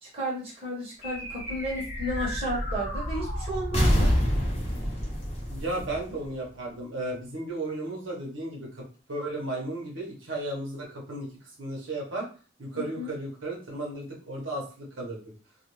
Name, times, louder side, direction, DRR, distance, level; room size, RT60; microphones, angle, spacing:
voice 1, 0.0-4.2 12.7-13.1, equal, 30° right, -5 dB, 1.0 m, -33 dB
sound 1, 1.0-6.7, equal, 30° left, 0.8 m, -28 dB
voice 2, 5.5-11.3 11.6-12.3 12.6-15.2, right 2 dB, 70° right, -2 dB, 0.9 m, -34 dB
2.4 x 2.3 x 3.0 m, 0.36 s
head